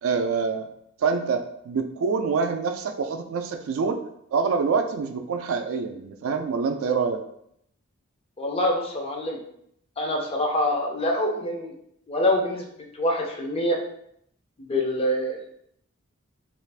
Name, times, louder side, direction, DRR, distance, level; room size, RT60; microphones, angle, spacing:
voice 1, 0.0-0.7 1.0-4.0 4.3-7.2, right 5 dB, 75° right, 6 dB, 0.3 m, -26 dB
voice 2, 8.4-9.4 10.0-11.8 12.1-12.7 12.9-13.8 14.6-15.4, left 1 dB, 30° left, 1 dB, 0.4 m, -25 dB
2.5 x 2.4 x 3.2 m, 0.72 s
head